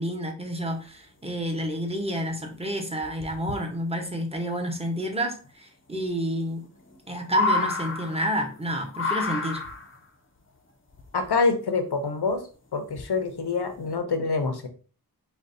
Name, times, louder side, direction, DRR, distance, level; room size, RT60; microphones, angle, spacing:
voice 1, 0.0-6.6 7.1-9.6, equal, 15° right, 2 dB, 0.8 m, -30 dB
sound 1, 2.0-2.1 2.3-2.6 3.0-3.6 5.1-5.2 5.4-5.5 6.1-6.2 6.5-8.6 8.9-10.0 10.9-11.6 12.3-12.4 12.9-13.3 13.7-13.9, left 3 dB, 35° left, 0.6 m, -29 dB
voice 2, 11.1-12.4 12.7-14.7, left 4 dB, 90° left, 7 dB, 0.7 m, -26 dB
5.1 x 2.3 x 2.6 m, 0.37 s
wide cardioid pair, 45°, 38 cm